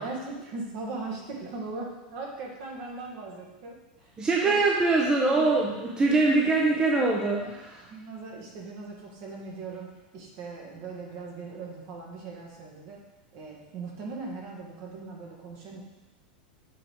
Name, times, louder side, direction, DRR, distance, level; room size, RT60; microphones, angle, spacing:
voice 1, 0.0-4.6 5.3-6.0 6.4-6.5 7.4-7.5 7.8-13.0 13.3-15.8, right 3 dB, 50° right, -1 dB, 1.8 m, -39 dB
voice 2, 4.2-7.8, right 3 dB, 15° right, -2 dB, 0.8 m, -23 dB
7.5 x 3.5 x 4.6 m, 1.1 s
supercardioid pair, 125°, 5 cm